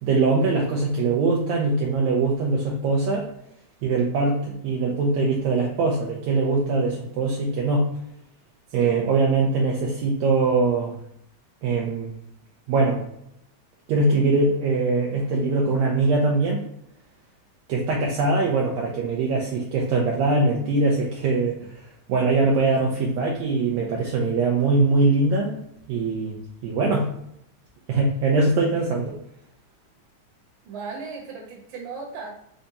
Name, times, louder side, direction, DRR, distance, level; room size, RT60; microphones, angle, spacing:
voice 1, 0.0-3.3 3.8-7.9 8.7-11.0 11.6-12.1 12.7-13.0 13.9-16.6 17.7-25.6 25.9-27.1 27.9-29.2, right 3 dB, 75° right, -1 dB, 1.8 m, -22 dB
voice 2, 30.7-32.3, right 4 dB, 50° right, -2 dB, 1.8 m, -36 dB
5.2 x 2.3 x 4.0 m, 0.75 s
omnidirectional pair, 3.4 m